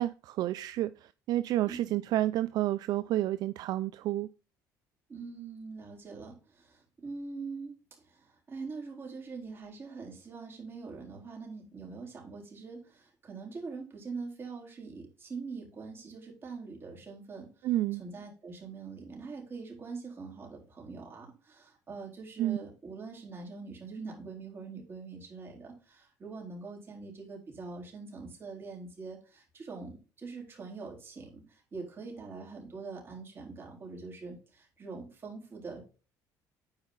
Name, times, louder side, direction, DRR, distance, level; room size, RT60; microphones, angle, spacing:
voice 1, 0.0-4.3 17.6-18.0 22.4-22.6, right 14 dB, 65° right, 0.4 m, -30 dB
voice 2, 5.1-17.7 18.0-35.8, right 4 dB, 30° right, 4.0 m, -43 dB
9.6 x 4.9 x 3.9 m
cardioid pair, 110°, 7 cm